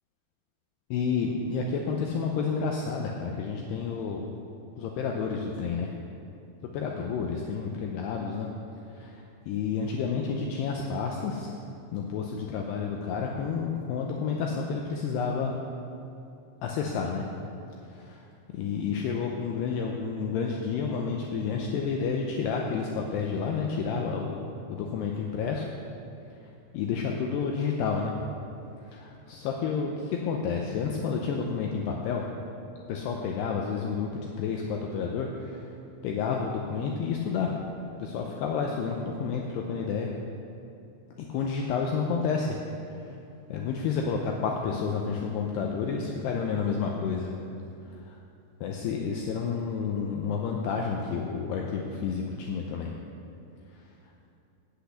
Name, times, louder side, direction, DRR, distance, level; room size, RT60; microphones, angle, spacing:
voice 1, 0.9-4.3 4.8-5.9 6.7-8.5 8.9-11.5 11.9-15.5 16.6-17.3 17.9-18.2 18.5-25.7 26.7-28.2 28.9-32.3 32.9-35.7 36.0-37.6 38.0-40.1 41.2-42.6 42.9-43.2 43.5-47.3 48.0-48.1 48.6-52.9, left 5 dB, 85° left, 0 dB, 2.4 m, -30 dB
8.5 x 8.0 x 8.1 m, 2.7 s
omnidirectional pair, 5.5 m